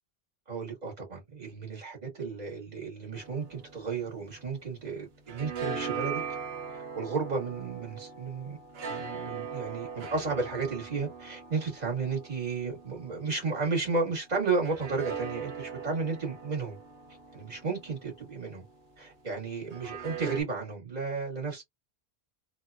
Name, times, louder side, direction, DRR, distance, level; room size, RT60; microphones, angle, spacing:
voice 1, 0.5-6.2 6.7-8.6 8.9-16.8 17.3-18.6 19.0-21.6, right 4 dB, 40° right, 1.7 m, -33 dB
sound 1, 3.1-4.8 5.1-13.8 14.6-18.7 19.7-20.4, right 6 dB, 70° right, 1.0 m, -40 dB
2.9 x 2.3 x 2.3 m
omnidirectional pair, 1.1 m